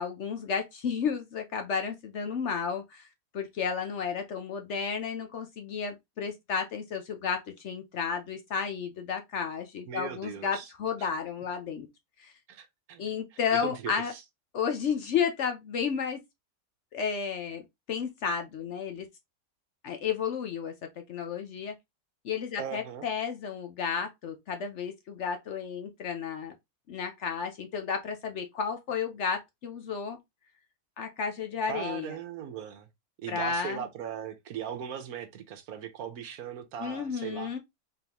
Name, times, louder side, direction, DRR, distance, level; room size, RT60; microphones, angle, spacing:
voice 1, 0.0-3.1 3.3-11.9 12.2-12.3 13.0-14.1 14.5-16.2 16.9-17.6 17.9-19.1 19.8-20.7 21.1-21.7 22.2-26.5 26.9-30.2 31.0-32.2 33.3-33.8 36.8-37.6, left 6 dB, 60° left, 0.8 m, -32 dB
voice 2, 9.9-10.7 11.0-11.1 12.5-13.0 13.3-14.2 22.6-23.1 31.7-32.9 33.2-37.6, right 8 dB, 75° right, 1.2 m, -39 dB
3.8 x 3.6 x 2.9 m
omnidirectional pair, 1.6 m